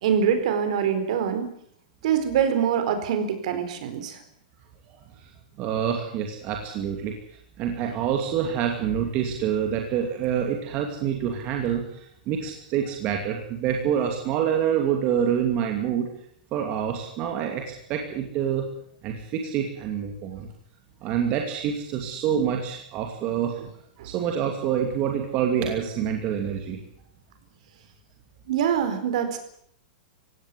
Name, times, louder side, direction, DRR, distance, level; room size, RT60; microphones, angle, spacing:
voice 1, 0.0-1.5 2.0-4.2 23.6-23.7 24.0-24.1 28.5-29.4, right 8 dB, 55° right, 8 dB, 4.4 m, -24 dB
voice 2, 4.9-5.3 5.6-7.2 7.6-16.1 16.5-18.6 19.0-20.5 21.0-23.6 24.0-26.8, right 8 dB, 30° right, 3 dB, 2.6 m, -27 dB
18.5 x 16.5 x 9.9 m, 0.68 s
supercardioid pair, 170°, 5 cm